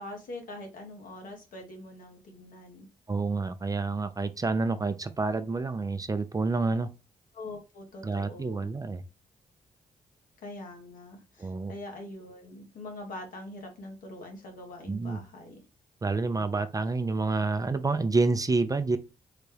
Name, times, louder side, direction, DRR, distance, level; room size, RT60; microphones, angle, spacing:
voice 1, 0.0-2.9 7.3-8.7 10.4-15.6, left 2 dB, 70° left, 1.1 m, -43 dB
voice 2, 3.1-6.9 8.0-9.0 11.4-11.7 14.9-15.2 16.0-19.0, right 3 dB, 25° right, 0.4 m, -28 dB
3.9 x 2.2 x 3.2 m
supercardioid pair, 50°, 15 cm